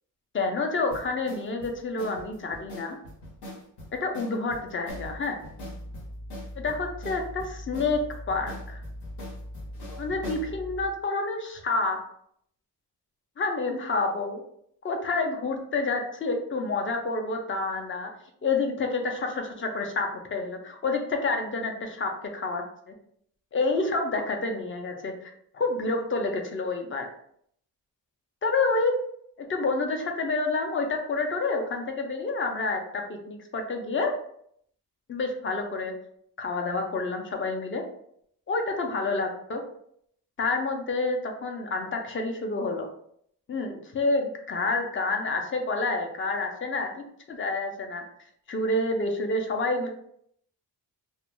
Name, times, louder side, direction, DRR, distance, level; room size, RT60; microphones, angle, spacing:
voice 1, 0.3-3.0 3.9-5.4 6.6-8.8 10.0-12.0 13.4-14.4 14.8-18.1 18.4-22.9 23.5-27.1 28.4-29.0 29.4-34.2 35.1-35.9 36.4-37.8 38.5-39.6 40.4-42.9 43.5-46.9 47.3-48.0 48.5-49.9, left 3 dB, 35° left, 3 dB, 0.5 m, -28 dB
sound 1, 0.9-10.5, left 1 dB, 80° left, 1.0 m, -43 dB
sound 2, 4.9-11.0, equal, 25° right, 0.4 m, -41 dB
2.4 x 2.2 x 3.0 m, 0.68 s
wide cardioid pair, 115°, 39 cm